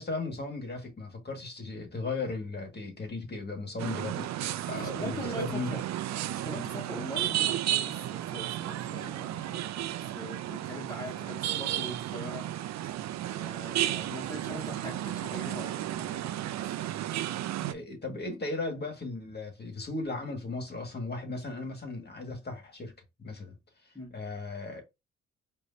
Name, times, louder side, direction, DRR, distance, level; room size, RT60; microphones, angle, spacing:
voice 1, 0.0-4.3 4.7-5.8 17.7-22.9 23.2-23.6 23.8-24.8, left 3 dB, 35° left, 2.0 m, -36 dB
sound 1, 3.8-17.7, right 13 dB, 65° right, 0.5 m, -33 dB
voice 2, 4.8-5.8 6.3-12.5 12.8-13.0 13.3-16.3 16.6-16.7 23.9-24.1, equal, 10° left, 2.3 m, -42 dB
4.9 x 3.1 x 2.8 m
supercardioid pair, 65°, 29 cm